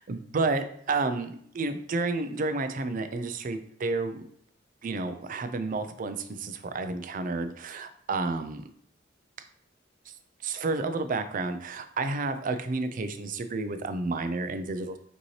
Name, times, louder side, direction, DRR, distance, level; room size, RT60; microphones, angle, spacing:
voice 1, 0.0-4.2 4.8-8.6 10.4-15.0, right 3 dB, 45° right, 9 dB, 0.4 m, -31 dB
5.1 x 2.8 x 3.2 m, 0.66 s
head